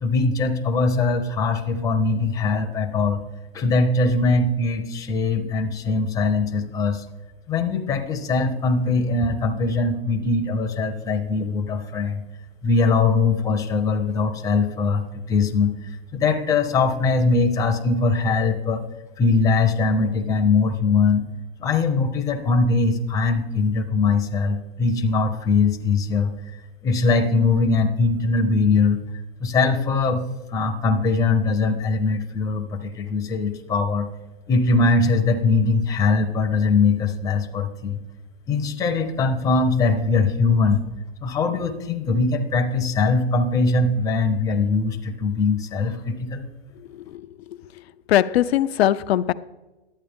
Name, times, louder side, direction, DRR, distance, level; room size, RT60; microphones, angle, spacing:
voice 1, 0.0-3.2 3.5-7.0 7.5-12.3 12.6-15.7 16.1-18.8 19.2-21.2 21.6-26.3 26.8-29.0 29.4-30.2 30.5-34.1 34.5-38.0 38.5-40.8 41.2-46.5, left 4 dB, 10° left, 4 dB, 0.7 m, -21 dB
voice 2, 46.9-47.2 48.1-49.3, left 12 dB, 80° left, 14 dB, 0.6 m, -20 dB
11.5 x 8.5 x 3.5 m, 1.1 s
hypercardioid pair, 140°, 31 cm